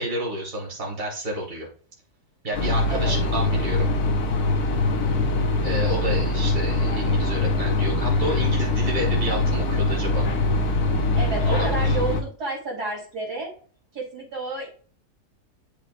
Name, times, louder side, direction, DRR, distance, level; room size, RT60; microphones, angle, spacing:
voice 1, 0.0-1.7 2.4-3.9 5.6-10.2 11.5-12.0, right 1 dB, 35° right, -3 dB, 3.0 m, -30 dB
sound 1, 2.5-12.2, left 2 dB, 75° left, 1.6 m, -23 dB
voice 2, 4.7-5.2 11.1-13.5 13.9-14.7, right 3 dB, 85° right, -3 dB, 4.4 m, -31 dB
12.5 x 5.0 x 2.6 m, 0.43 s
omnidirectional pair, 1.7 m